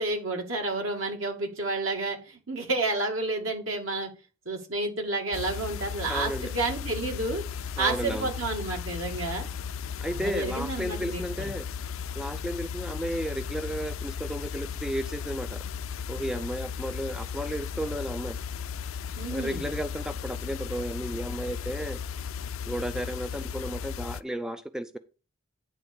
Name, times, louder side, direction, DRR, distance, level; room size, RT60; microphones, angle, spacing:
voice 1, 0.0-4.1 4.5-7.4 7.8-9.5 10.1-11.5 19.2-19.6, right 2 dB, 80° right, 2 dB, 2.4 m, -30 dB
sound 1, 5.3-24.2, left 7 dB, 85° left, 0.4 m, -36 dB
voice 2, 6.1-6.5 7.8-8.3 10.0-11.7 12.2-15.6 16.1-18.4 19.3-22.0 22.7-25.0, equal, 5° right, 10 dB, 0.4 m, -33 dB
9.7 x 3.8 x 7.0 m, 0.33 s
head